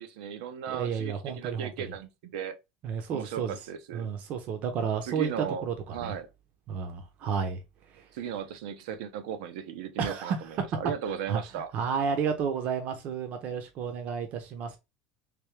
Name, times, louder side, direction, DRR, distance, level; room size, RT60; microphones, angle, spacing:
voice 1, 0.0-2.6 3.1-4.1 5.1-5.7 5.9-6.3 8.1-11.7, right 8 dB, 85° right, 0.6 m, -36 dB
voice 2, 0.7-2.0 2.8-3.5 3.9-6.1 6.7-7.6 7.9-8.1 10.0-10.4 11.1-14.8, right 6 dB, 45° right, 0.7 m, -32 dB
3.4 x 2.8 x 3.2 m
supercardioid pair, 140°, 4 cm